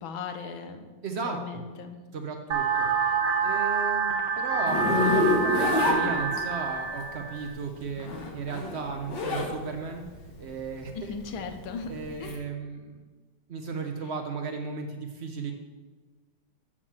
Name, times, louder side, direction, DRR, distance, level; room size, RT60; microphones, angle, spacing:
voice 1, 0.0-0.9 1.2-2.0 10.9-11.9 12.2-12.4, left 5 dB, 85° left, 7 dB, 1.6 m, -37 dB
voice 2, 1.0-1.6 2.1-2.9 3.4-10.0 10.4-11.1 11.9-12.9 13.5-15.5, right 5 dB, 90° right, 4 dB, 0.5 m, -35 dB
sound 1, 2.5-7.5, right 5 dB, 65° right, 1.7 m, -27 dB
Zipper (clothing), 4.7-6.7 7.9-9.5 9.9-12.3, left 3 dB, 65° left, 1.9 m, -27 dB
7.3 x 6.6 x 7.2 m, 1.3 s
omnidirectional pair, 2.2 m